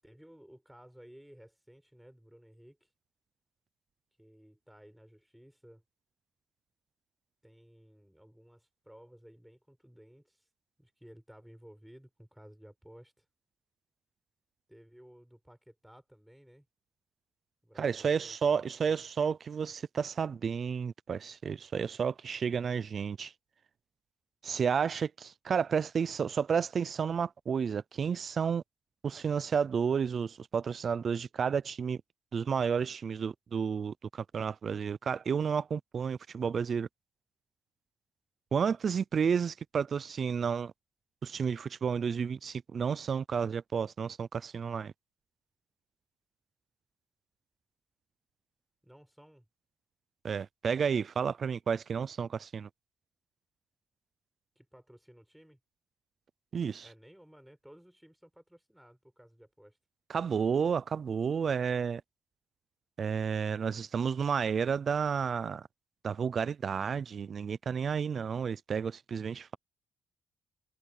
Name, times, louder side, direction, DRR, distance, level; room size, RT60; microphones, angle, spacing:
voice 1, 0.0-2.9 4.2-5.8 7.4-10.4 10.8-13.3 14.7-16.7 17.6-18.5 18.8-19.0 48.8-49.5 54.6-55.6 56.8-59.8, equal, 5° right, 5.8 m, -56 dB
voice 2, 17.8-23.3 24.4-28.6 29.0-32.0 32.3-36.9 38.5-40.7 41.2-44.9 50.2-52.7 56.5-56.9 60.1-62.0 63.0-65.7 66.0-69.6, right 6 dB, 50° right, 0.5 m, -31 dB
cardioid pair, 90°, 0 cm